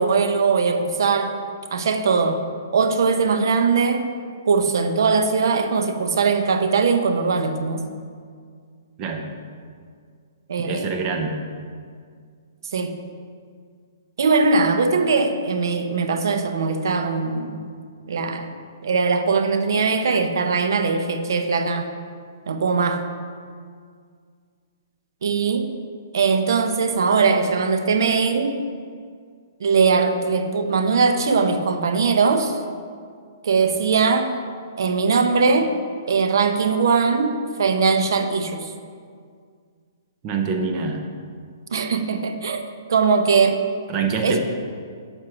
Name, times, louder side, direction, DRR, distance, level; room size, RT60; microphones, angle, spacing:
voice 1, 0.0-1.4 1.7-2.4 2.7-4.1 4.5-7.8 10.5-10.9 12.7-12.9 14.2-17.6 18.1-18.5 18.8-21.9 22.5-23.0 25.2-25.7 26.1-28.6 29.6-32.6 33.4-34.4 34.8-35.8 36.1-38.7 41.7-43.6 44.2-44.4, right 4 dB, 70° right, 7 dB, 0.7 m, -20 dB
voice 2, 10.6-11.4 40.2-41.0 43.9-44.4, right 4 dB, 25° right, 4 dB, 0.7 m, -25 dB
7.7 x 4.5 x 5.9 m, 2.1 s
hypercardioid pair, 165°, 2 cm